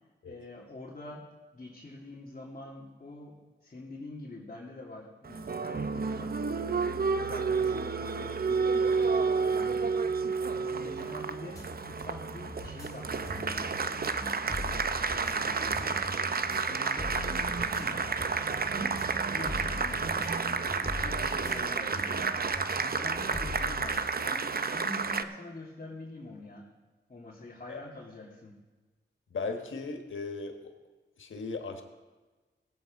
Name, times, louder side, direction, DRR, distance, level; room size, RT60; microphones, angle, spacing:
voice 1, 0.2-1.3 1.5-6.4 7.2-10.0 10.5-14.4 14.7-16.0 16.4-18.1 18.4-19.0 19.3-22.3 22.8-26.7 27.1-28.6, left 2 dB, 40° left, -6 dB, 2.5 m, -46 dB
Applause, 5.2-25.2, right 5 dB, 50° right, 0.7 m, -30 dB
sound 1, 11.5-24.0, left 2 dB, 20° left, 3.9 m, -42 dB
voice 2, 29.3-30.7 31.2-31.8, left 4 dB, 85° left, 4 dB, 1.3 m, -37 dB
18.0 x 7.9 x 5.2 m, 1.2 s
cardioid pair, 55°, 20 cm